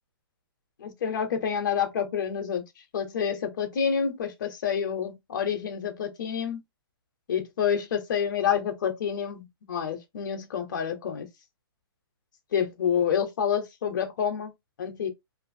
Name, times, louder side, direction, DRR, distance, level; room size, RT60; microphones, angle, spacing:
voice 1, 0.8-2.6 2.9-6.6 7.3-11.3 12.5-14.5 14.8-15.1, left 7 dB, 50° left, 0.7 m, -28 dB
2.5 x 2.5 x 2.5 m
hypercardioid pair, 170°, 13 cm